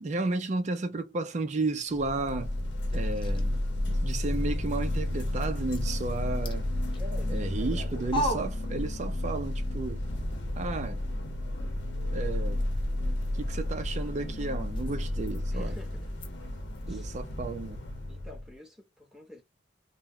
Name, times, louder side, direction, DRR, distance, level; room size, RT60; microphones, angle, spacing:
voice 1, 0.0-2.5 2.9-3.6 3.9-6.7 7.3-10.0 10.6-11.0 12.1-12.6 13.3-15.7 16.9-17.8, right 3 dB, 40° right, 0.4 m, -33 dB
sound 1, 1.9-18.5, left 1 dB, 70° left, 0.8 m, -32 dB
sound 2, 2.2-9.4 9.7-16.9, equal, 25° left, 0.6 m, -42 dB
voice 2, 6.9-8.5 15.5-16.1 16.9-17.1 18.1-19.4, left 2 dB, 5° right, 0.9 m, -48 dB
2.2 x 2.1 x 3.5 m
head